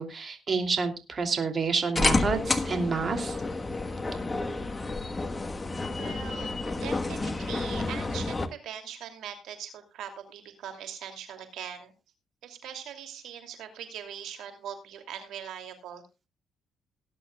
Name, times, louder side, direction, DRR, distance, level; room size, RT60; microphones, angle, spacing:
voice 1, 0.0-3.4, right 4 dB, 40° right, 6 dB, 2.7 m, -29 dB
sound 1, 2.0-8.5, left 3 dB, 20° left, 1.3 m, -30 dB
voice 2, 5.9-11.9 12.4-16.0, right 9 dB, 80° right, 6 dB, 2.7 m, -41 dB
19.0 x 10.5 x 2.3 m, 0.28 s
cardioid pair, 90°, 0 cm